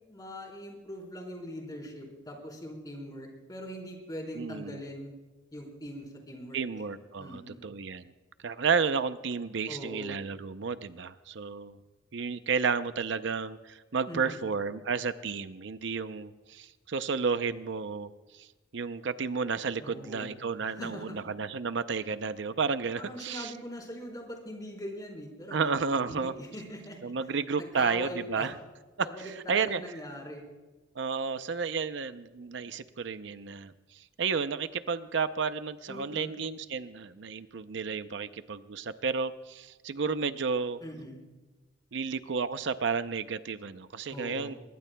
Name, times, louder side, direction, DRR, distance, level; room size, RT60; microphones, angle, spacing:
voice 1, 0.1-5.1 5.5-6.8 7.2-7.6 9.7-10.1 14.1-14.5 19.8-20.3 20.7-21.0 23.0-27.1 27.6-28.5 29.0-30.4 35.9-36.4 40.8-41.2 44.1-44.5, equal, 20° left, -1 dB, 4.1 m, -41 dB
voice 2, 4.3-4.8 6.5-8.1 8.4-11.8 12.1-18.5 18.7-23.5 25.5-26.3 27.0-28.5 29.0-29.8 31.0-40.8 41.9-44.6, right 5 dB, 70° right, 11 dB, 0.6 m, -32 dB
23.5 x 21.5 x 2.2 m, 1.2 s
head